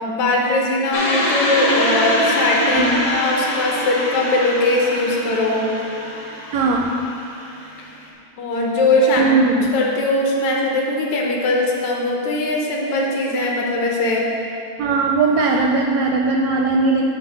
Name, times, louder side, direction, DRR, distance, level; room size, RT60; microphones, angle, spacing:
voice 1, 0.0-5.7 8.4-9.3 9.7-14.3, left 2 dB, 75° left, -1 dB, 2.2 m, -20 dB
sound 1, 0.9-8.0, left 1 dB, 55° left, 0.8 m, -24 dB
voice 2, 6.5-6.9 9.2-9.7 14.8-17.0, right 3 dB, 80° right, 1 dB, 1.5 m, -19 dB
9.3 x 3.7 x 6.2 m, 2.7 s
omnidirectional pair, 3.4 m